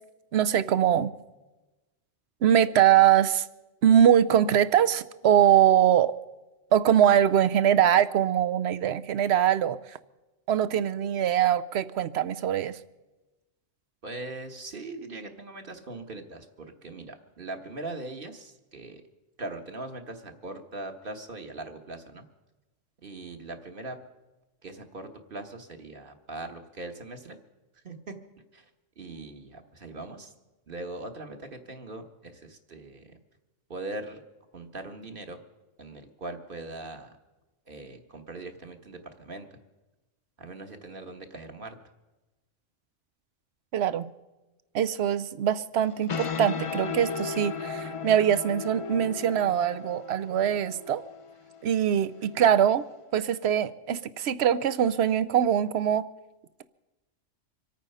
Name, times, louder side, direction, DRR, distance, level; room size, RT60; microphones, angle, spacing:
voice 1, 0.3-1.1 2.4-3.5 3.8-6.2 6.7-10.0 10.5-12.8 43.7-44.1 44.7-51.0 51.6-52.8 53.1-56.1, right 10 dB, 65° right, 14 dB, 0.9 m, -22 dB
voice 2, 14.0-19.0 19.4-22.2 23.0-24.0 24.6-27.4 27.8-28.1 28.5-28.6 29.0-30.3 30.7-33.1 33.7-34.2 34.5-35.4 35.8-37.1 37.7-39.5 40.4-41.7, right 2 dB, 45° right, 5 dB, 1.5 m, -40 dB
sound 1, 45.8-53.0, left 5 dB, 45° left, 0.4 m, -36 dB
26.0 x 9.0 x 5.5 m, 1.1 s
omnidirectional pair, 1.3 m